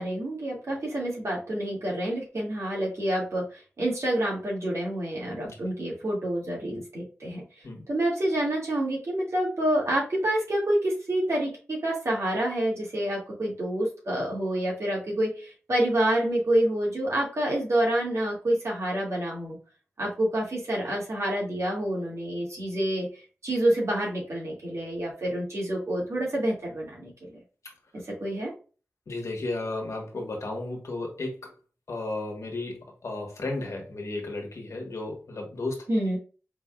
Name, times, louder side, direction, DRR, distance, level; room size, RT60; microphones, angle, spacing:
voice 1, 0.0-7.4 7.9-19.6 20.0-23.1 23.4-27.4 28.2-28.5 35.9-36.2, right 1 dB, 70° right, -3 dB, 2.1 m, -28 dB
voice 2, 29.1-31.5 31.9-35.8, left 2 dB, 80° left, 1 dB, 1.3 m, -34 dB
5.1 x 3.4 x 2.3 m, 0.36 s
cardioid pair, 50°, 5 cm